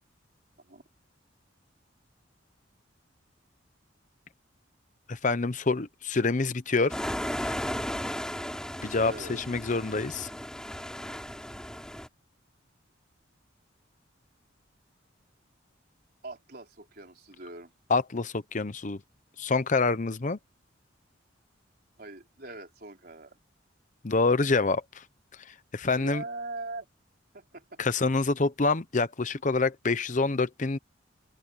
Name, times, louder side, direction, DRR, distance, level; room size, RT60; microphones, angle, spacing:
voice 1, 5.1-7.0 7.4-7.6 8.8-10.3 17.9-19.0 19.4-20.4 24.0-24.8 25.7-26.2 27.8-30.8, left 3 dB, 40° left, 0.8 m, -26 dB
sound 1, 6.9-12.1, equal, 5° left, 4.0 m, -35 dB
voice 2, 9.0-9.5 16.2-17.7 22.0-23.4 25.9-26.9 27.3-27.8, right 2 dB, 50° right, 4.2 m, -41 dB
open air
head